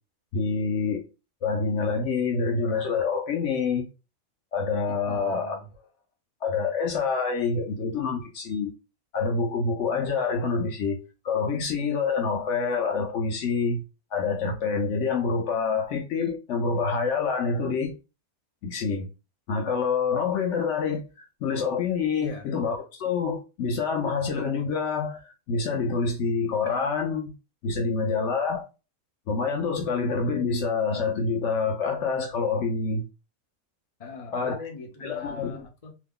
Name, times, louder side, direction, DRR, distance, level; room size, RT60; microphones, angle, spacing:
voice 1, 0.3-1.0 1.4-3.9 4.5-5.6 6.4-8.7 9.1-11.0 11.2-13.8 14.1-17.9 18.6-19.1 19.5-27.3 27.6-28.7 29.3-33.1 34.3-34.6 35.0-35.7, left 5 dB, 65° left, 0.9 m, -27 dB
voice 2, 4.9-5.7 22.2-22.5 34.0-35.9, left 3 dB, 40° left, 0.5 m, -42 dB
2.8 x 2.1 x 3.6 m
omnidirectional pair, 1.5 m